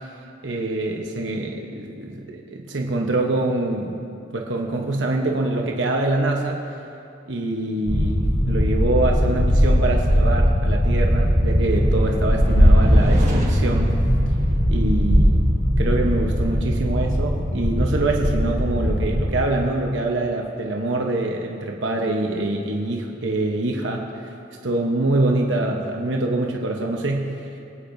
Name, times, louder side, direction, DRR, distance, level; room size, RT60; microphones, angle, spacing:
voice 1, 0.4-4.0 4.3-6.6 7.3-14.0 14.7-15.4 15.8-24.3 24.6-27.5, right 2 dB, 75° right, 0 dB, 1.0 m, -25 dB
sound 1, 7.9-19.4, equal, 90° left, 1.9 m, -19 dB
sound 2, 10.2-17.6, equal, 40° right, 1.7 m, -31 dB
25.0 x 8.8 x 2.7 m, 2.6 s
head